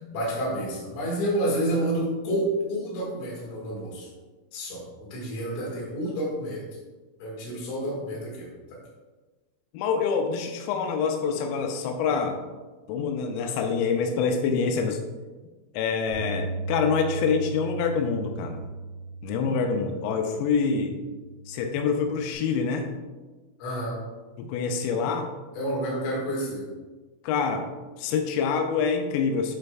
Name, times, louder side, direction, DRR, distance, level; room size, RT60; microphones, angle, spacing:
voice 1, 0.1-4.1 4.5-6.6 7.2-8.8 23.6-24.0 25.5-26.6, right 1 dB, 60° left, -4 dB, 3.1 m, -29 dB
voice 2, 9.7-12.4 12.9-15.0 15.7-18.7 19.2-20.9 21.5-22.9 24.4-25.3 27.2-27.7 28.0-29.6, left 5 dB, 90° left, 4 dB, 3.3 m, -26 dB
Bass guitar, 16.1-22.4, right 3 dB, 80° right, 4.0 m, -37 dB
11.0 x 4.0 x 2.3 m, 1.3 s
omnidirectional pair, 5.8 m